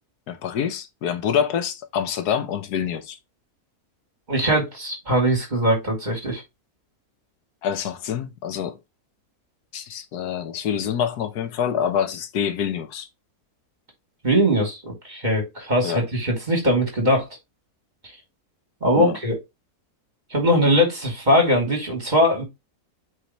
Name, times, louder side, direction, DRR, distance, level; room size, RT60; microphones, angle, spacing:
voice 1, 0.3-3.2 7.6-8.8 9.7-13.1 15.8-16.0 19.0-19.1, left 8 dB, 85° left, 1.4 m, -26 dB
voice 2, 4.3-6.4 14.2-17.3 18.8-19.4 20.3-22.4, equal, 30° right, 2.8 m, -21 dB
8.5 x 4.2 x 2.9 m
omnidirectional pair, 1.6 m